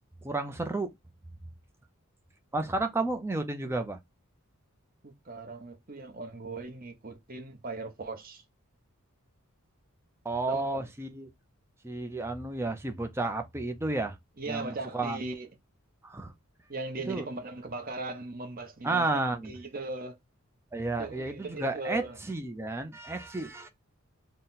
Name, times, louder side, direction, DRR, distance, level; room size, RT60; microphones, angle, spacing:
voice 1, 0.2-0.9 2.5-4.0 10.2-11.3 11.8-14.2 14.5-15.2 16.0-16.3 17.1-17.3 18.8-19.5 20.7-23.7, right 2 dB, 10° right, 0.4 m, -32 dB
voice 2, 5.0-8.4 10.5-10.9 14.4-15.5 16.7-19.0 19.5-20.2 21.0-22.2, right 2 dB, 40° right, 0.8 m, -38 dB
3.9 x 2.1 x 3.9 m
head